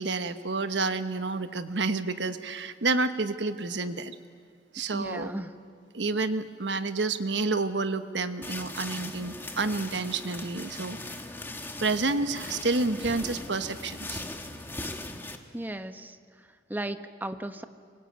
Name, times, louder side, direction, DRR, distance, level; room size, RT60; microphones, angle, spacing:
voice 1, 0.0-4.1 4.7-5.3 5.9-11.0 11.8-14.2, right 3 dB, 80° right, 10 dB, 1.2 m, -29 dB
voice 2, 4.9-5.5 15.5-17.6, right 1 dB, 10° right, 9 dB, 0.9 m, -36 dB
sound 1, 8.4-15.4, left 2 dB, 10° left, 1.4 m, -39 dB
25.5 x 22.5 x 8.9 m, 2.1 s
head